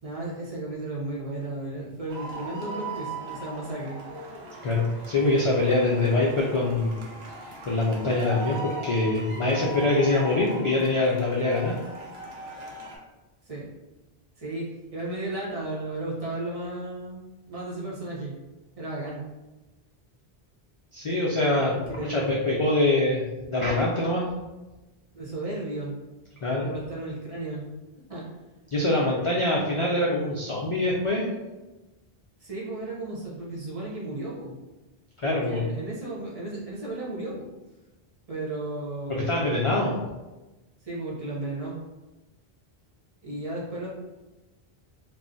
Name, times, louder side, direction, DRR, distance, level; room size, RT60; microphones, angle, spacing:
voice 1, 0.0-4.0 13.5-13.7 14.4-18.3 18.8-19.2 21.7-22.4 25.1-26.0 26.6-27.7 28.1-28.3 32.4-34.6 35.2-37.5 38.3-39.8 40.8-41.8 43.2-43.9, right 2 dB, 40° right, -6 dB, 0.7 m, -34 dB
sound 1, 2.1-13.0, right 2 dB, 85° right, 0.9 m, -39 dB
voice 2, 4.6-7.0 7.6-11.8 20.9-24.3 26.4-26.7 28.7-31.3 35.2-35.6 39.1-40.0, left 2 dB, 60° left, -3 dB, 0.3 m, -24 dB
2.4 x 2.0 x 3.8 m, 1.1 s
omnidirectional pair, 1.0 m